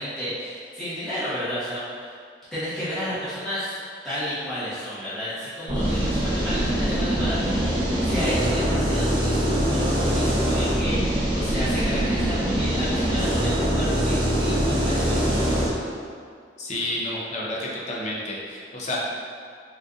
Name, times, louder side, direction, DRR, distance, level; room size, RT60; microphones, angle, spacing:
voice 1, 0.0-2.1 2.5-3.8 4.0-15.7, equal, 5° left, -15 dB, 0.8 m, -32 dB
sound 1, 5.7-15.7, equal, 30° right, 0.7 m, -23 dB
voice 2, 16.6-19.0, left 1 dB, 40° left, -4 dB, 0.5 m, -30 dB
3.7 x 2.5 x 2.3 m, 2.1 s
head